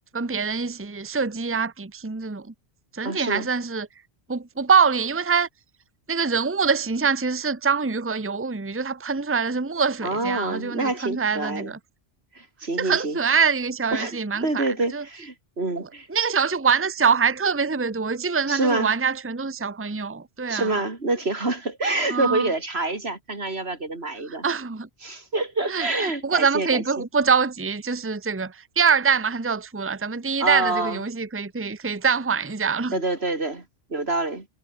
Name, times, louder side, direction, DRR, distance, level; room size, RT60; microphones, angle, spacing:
voice 1, 0.1-2.5 2.9-3.9 4.3-5.5 6.1-11.8 12.8-15.0 15.8-20.7 22.1-22.5 24.3-24.9 25.7-33.0, right 5 dB, 15° right, 0.9 m, -24 dB
voice 2, 3.0-3.5 10.0-11.7 12.3-13.2 13.9-16.1 18.5-18.9 20.5-24.5 25.0-26.8 30.4-31.0 32.9-34.5, right 2 dB, 85° right, 3.9 m, -27 dB
omnidirectional pair, 1.0 m